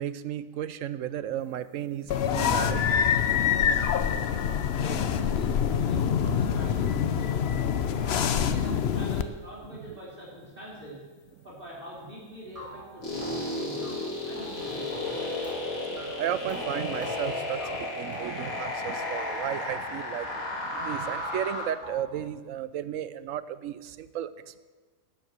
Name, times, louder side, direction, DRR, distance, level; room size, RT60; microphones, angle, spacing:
voice 1, 0.0-3.1 3.9-4.0 7.8-8.0 9.7-9.8 15.8-24.6, right 10 dB, 75° right, 15 dB, 1.0 m, -34 dB
sound 1, 2.1-9.2, left 8 dB, 55° left, 0.8 m, -25 dB
voice 2, 4.8-7.5 7.9-11.0 11.4-15.2, equal, 40° right, -7 dB, 3.5 m, -44 dB
sound 2, 12.0-12.1 12.5-18.9 19.2-20.5 20.8-22.2, equal, 25° right, 2.9 m, -45 dB
sound 3, 13.0-21.7, left 2 dB, 90° left, 3.1 m, -33 dB
12.0 x 7.8 x 8.0 m, 1.3 s
omnidirectional pair, 1.4 m